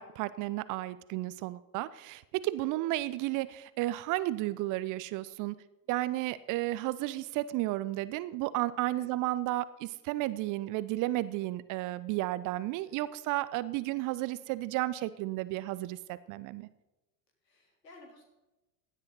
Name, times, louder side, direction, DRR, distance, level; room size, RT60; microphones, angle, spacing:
voice 1, 0.0-5.6 5.9-16.7, right 17 dB, 40° right, 16 dB, 0.7 m, -33 dB
voice 2, 12.7-13.1 17.4-18.2, left 2 dB, 80° left, 1 dB, 3.7 m, -56 dB
16.0 x 10.5 x 4.0 m, 1.0 s
figure-of-eight pair, 75°, 48 cm